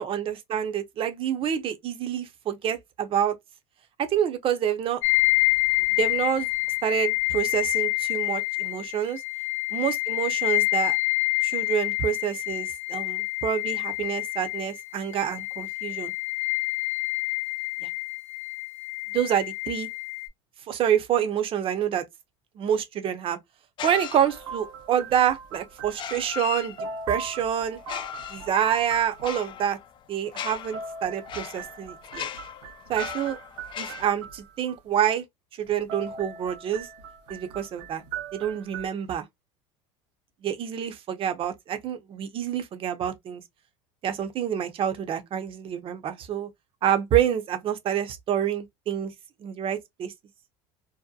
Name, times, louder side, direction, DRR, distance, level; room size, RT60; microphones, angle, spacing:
voice 1, 0.0-3.4 4.0-5.0 6.0-6.5 6.8-9.2 9.7-11.0 11.4-16.1 17.8-17.9 19.1-19.9 20.7-22.0 22.6-23.4 23.8-26.8 27.1-27.8 28.3-29.8 30.1-32.3 32.9-33.4 33.8-35.2 35.6-36.9 37.3-38.0 38.3-39.3 40.4-43.4 44.0-46.5 46.8-49.1 49.4-50.1, right 9 dB, 40° right, 0.6 m, -27 dB
sound 1, 5.0-20.3, left 28 dB, 65° left, 0.8 m, -27 dB
sound 2, 23.8-24.7 25.9-27.2 27.8-34.1, left 9 dB, 35° left, 0.3 m, -38 dB
sound 3, 24.3-26.5 26.8-29.5 30.5-34.7 35.7-38.9, right 5 dB, 85° right, 0.7 m, -39 dB
2.7 x 2.1 x 2.3 m
supercardioid pair, 115°, 15 cm